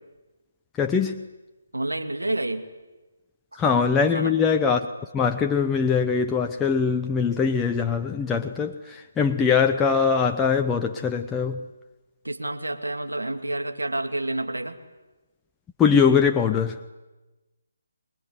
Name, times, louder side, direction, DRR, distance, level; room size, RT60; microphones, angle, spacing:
voice 1, 0.8-1.2 3.5-4.9 5.1-11.6 15.8-16.8, left 6 dB, 10° left, 4 dB, 0.8 m, -22 dB
voice 2, 1.7-2.6 4.0-4.4 12.2-14.8, right 2 dB, 90° right, 6 dB, 2.5 m, -29 dB
25.0 x 20.5 x 9.7 m, 1.1 s
figure-of-eight pair, 145°, 0 cm